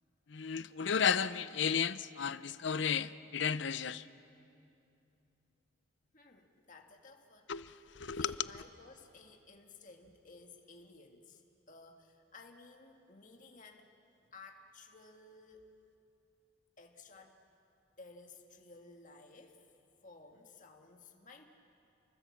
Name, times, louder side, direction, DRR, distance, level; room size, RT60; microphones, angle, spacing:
voice 1, 0.3-4.1 7.5-8.6, left 7 dB, 60° left, 0.6 m, -33 dB
voice 2, 6.1-7.5 8.2-11.4 11.7-13.9 14.3-15.6 16.8-17.4 18.0-19.7 20.0-21.4, left 3 dB, 40° left, 1.8 m, -56 dB
29.5 x 23.0 x 7.3 m
head